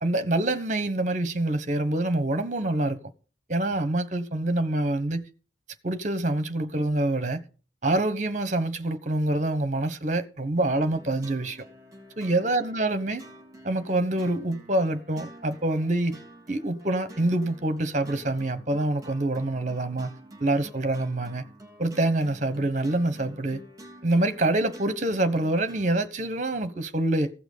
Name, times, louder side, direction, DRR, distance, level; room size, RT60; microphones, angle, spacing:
voice 1, 0.0-3.0 3.5-5.3 5.8-7.4 7.8-11.6 12.2-13.2 13.6-16.2 16.5-21.4 21.8-23.6 24.0-27.3, right 2 dB, 40° right, 1.2 m, -26 dB
sound 1, 10.6-26.0, right 1 dB, 20° right, 3.4 m, -48 dB
15.5 x 6.1 x 6.9 m
head